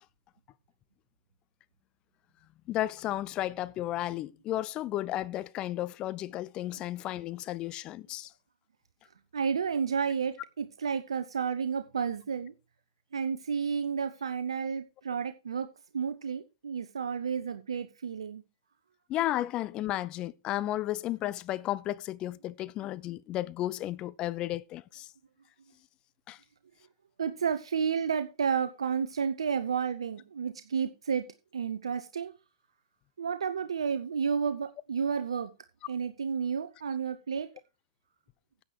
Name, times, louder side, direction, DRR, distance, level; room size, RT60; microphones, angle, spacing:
voice 1, 2.7-8.3 19.1-25.1 26.3-26.4, left 14 dB, 30° left, 0.5 m, -33 dB
voice 2, 9.3-12.5 13.1-15.7 15.9-18.4 27.2-31.3 31.5-32.3 33.2-35.5 35.9-37.5, right 6 dB, 75° right, 0.9 m, -31 dB
10.0 x 7.9 x 4.7 m
hypercardioid pair, 110°, 3 cm